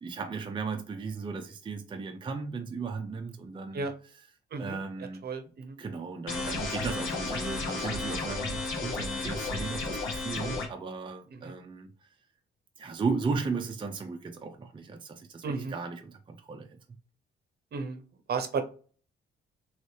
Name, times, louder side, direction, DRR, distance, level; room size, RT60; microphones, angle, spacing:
voice 1, 0.0-3.9 4.6-5.2 5.8-12.1 12.8-16.8, right 4 dB, 25° right, 0.5 m, -36 dB
voice 2, 5.2-5.8 11.4-11.5 15.4-15.7 17.7-18.0 18.3-18.6, right 4 dB, 55° right, 0.8 m, -33 dB
sound 1, 6.3-10.7, left 3 dB, 85° left, 1.2 m, -33 dB
3.2 x 3.1 x 2.7 m
cardioid pair, 90°, 20 cm